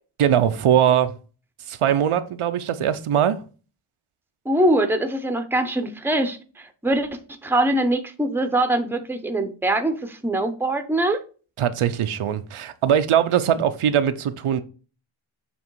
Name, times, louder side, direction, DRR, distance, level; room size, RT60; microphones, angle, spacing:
voice 1, 0.2-1.1 1.7-3.4 11.6-14.6, right 9 dB, 80° right, 0.7 m, -21 dB
voice 2, 4.4-11.2, right 1 dB, 5° right, 0.7 m, -23 dB
7.2 x 3.2 x 4.6 m
wide cardioid pair, 105°, 50 cm